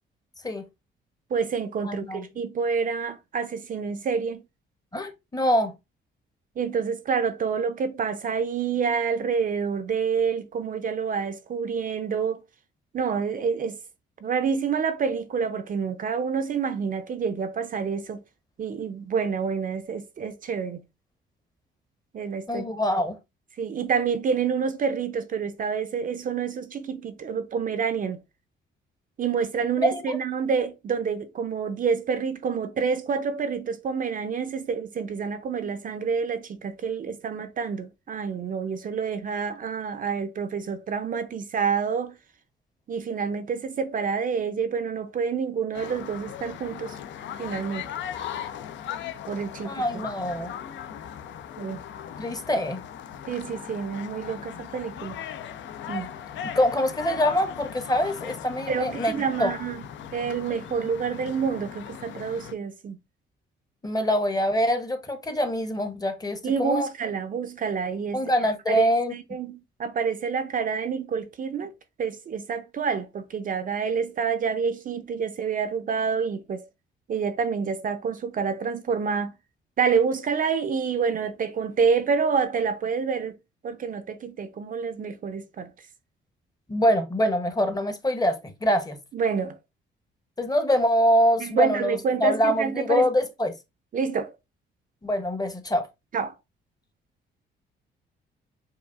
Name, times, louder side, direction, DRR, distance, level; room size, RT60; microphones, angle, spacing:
voice 1, 1.3-4.4 6.6-12.4 12.9-13.8 14.2-18.2 18.6-20.8 22.1-22.7 23.6-28.2 29.2-42.2 42.9-47.0 47.4-47.9 49.3-50.1 51.6-51.8 53.3-55.1 55.9-56.1 58.7-59.8 60.1-63.0 66.4-68.2 68.7-71.7 72.0-76.7 77.1-79.3 79.8-83.4 83.6-85.7 89.1-89.6 91.4-93.1 93.9-94.3 96.1-96.4, right 6 dB, 45° right, 0.5 m, -28 dB
voice 2, 1.8-2.2 4.9-5.7 22.5-23.2 29.8-30.2 49.6-50.5 52.2-52.8 56.5-59.5 63.8-66.9 68.1-69.1 86.7-89.0 90.4-93.5 95.0-95.9, equal, 20° left, 0.8 m, -24 dB
sound 1, 45.7-62.5, left 9 dB, 70° left, 0.5 m, -38 dB
4.7 x 2.4 x 2.4 m
cardioid pair, 90°, 20 cm